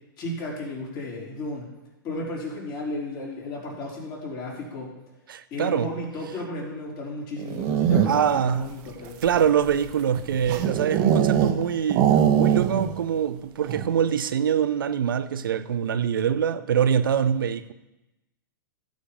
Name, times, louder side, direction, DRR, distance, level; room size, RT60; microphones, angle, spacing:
voice 1, 0.2-1.7 2.0-5.0 5.5-9.2, left 2 dB, 40° left, 4.2 m, -34 dB
voice 2, 5.3-5.9 8.1-8.7 9.2-17.7, right 8 dB, 75° right, 0.7 m, -24 dB
sound 1, 7.4-8.4 9.0-11.6 11.9-13.0 13.2-13.3 13.6-14.0, right 9 dB, 45° right, 1.2 m, -22 dB
16.0 x 5.3 x 5.2 m
hypercardioid pair, 110°, 11 cm